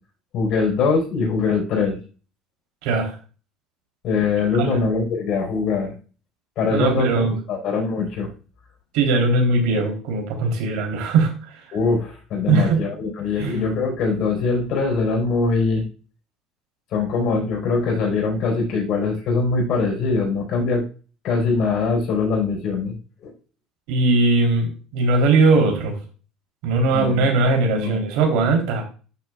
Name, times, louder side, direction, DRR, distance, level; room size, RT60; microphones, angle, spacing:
voice 1, 0.3-2.0 4.0-5.9 6.6-7.1 7.5-8.3 11.7-15.8 16.9-20.8 21.2-22.9 23.2-23.3 26.9-27.3 27.7-28.0, left 4 dB, 55° left, 0 dB, 4.6 m, -22 dB
voice 2, 2.8-3.1 4.6-4.8 6.7-7.4 8.9-11.3 12.5-12.8 13.4-13.6 23.9-26.0 26.6-28.8, right 3 dB, 85° right, 3 dB, 3.5 m, -19 dB
11.5 x 7.6 x 2.4 m, 0.36 s
cardioid pair, 145°, 0 cm